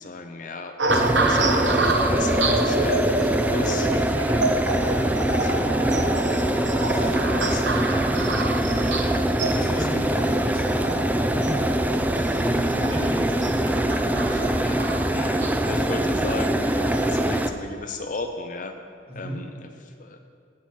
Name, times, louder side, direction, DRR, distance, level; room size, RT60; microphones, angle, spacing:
voice 1, 0.0-1.7 2.0-4.1 5.1-5.7 6.9-7.7 8.7-9.1 9.4-10.6 12.1-12.8 14.2-18.8 19.2-19.5 19.8-20.2, left 3 dB, 45° left, 6 dB, 0.5 m, -36 dB
voice 2, 0.8-1.2 4.8-5.4 6.8-8.3 9.5-11.9 12.3-14.2 19.1-19.4, equal, 30° right, -4 dB, 2.0 m, -36 dB
sound 1, 0.8-17.3 17.9-18.2, right 2 dB, 80° right, 1.0 m, -28 dB
sound 2, 0.9-17.5, right 1 dB, 10° right, 0.3 m, -23 dB
8.5 x 5.9 x 7.4 m, 2.2 s
head